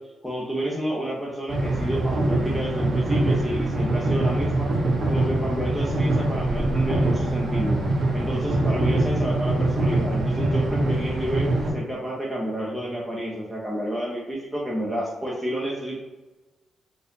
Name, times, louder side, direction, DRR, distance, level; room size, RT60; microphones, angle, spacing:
voice 1, 0.2-4.7 5.0-7.8 8.1-16.0, equal, 5° left, -5 dB, 0.9 m, -30 dB
sound 1, 1.5-11.7, right 2 dB, 55° right, 0.8 m, -23 dB
4.0 x 2.6 x 2.7 m, 1.2 s
supercardioid pair, 60°, 0 cm